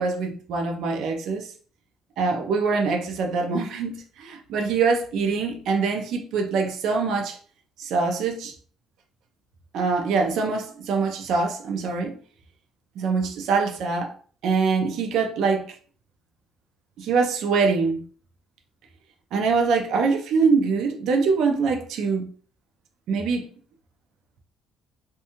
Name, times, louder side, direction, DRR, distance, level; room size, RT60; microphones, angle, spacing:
voice 1, 0.0-1.5 2.2-7.4 7.8-8.5 9.7-12.2 13.0-14.1 14.4-15.7 17.0-18.0 19.3-22.3 23.1-23.5, right 4 dB, 70° right, 0.5 m, -24 dB
2.6 x 2.2 x 2.8 m
cardioid pair, 110°, 0 cm